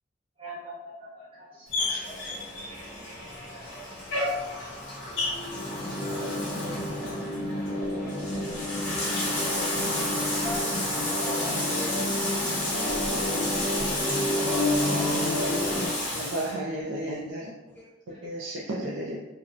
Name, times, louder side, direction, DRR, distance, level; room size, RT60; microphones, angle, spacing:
voice 1, 0.4-1.7 2.0-2.3 3.5-3.8 4.1-4.2 4.5-4.7 5.2-5.3 6.9-7.6 18.1-18.3, right 1 dB, 30° right, -9 dB, 0.8 m, -46 dB
Bathtub (filling or washing), 1.7-16.5, left 1 dB, 75° left, 1.0 m, -31 dB
sound 1, 5.5-15.9, left 1 dB, 55° left, 0.6 m, -30 dB
voice 2, 10.2-12.9 14.3-15.8 17.1-17.3 17.7-17.8, equal, 10° left, -6 dB, 0.5 m, -41 dB
voice 3, 16.1-17.5 18.1-19.2, right 1 dB, 80° right, -4 dB, 0.4 m, -33 dB
2.6 x 2.0 x 2.4 m, 1.0 s
head